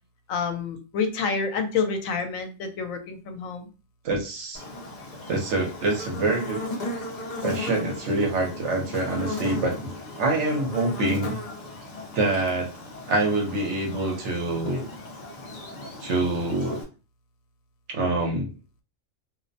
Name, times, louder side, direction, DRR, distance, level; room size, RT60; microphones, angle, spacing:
voice 1, 0.3-3.7, left 5 dB, 80° left, 6 dB, 1.0 m, -28 dB
voice 2, 4.0-4.6 5.3-6.6 7.4-9.9 10.2-11.4 12.1-12.7 13.1-14.9 16.0-16.8 17.9-18.5, right 2 dB, 65° right, 1 dB, 0.9 m, -25 dB
Buzz, 4.5-16.8, left 2 dB, 45° left, 0.6 m, -36 dB
2.5 x 2.0 x 2.5 m, 0.32 s
omnidirectional pair, 1.4 m